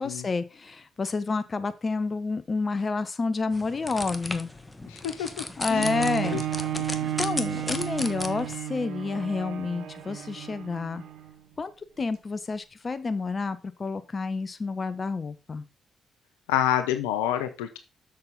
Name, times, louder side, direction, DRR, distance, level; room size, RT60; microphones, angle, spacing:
voice 1, 0.0-4.5 5.6-6.4 7.2-11.0 11.6-11.7 12.0-15.7, left 4 dB, 40° left, 12 dB, 1.0 m, -29 dB
sound 1, 3.5-8.6, left 2 dB, 20° left, 1.3 m, -36 dB
voice 2, 4.9-5.4 5.7-5.9 6.3-6.4 6.7-6.8 16.5-17.8, left 11 dB, 85° left, 9 dB, 0.7 m, -27 dB
Bowed string instrument, 5.7-11.4 12.0-12.1, right 11 dB, 70° right, 0.8 m, -33 dB
7.2 x 6.6 x 4.0 m, 0.29 s
hypercardioid pair, 45°, 0 cm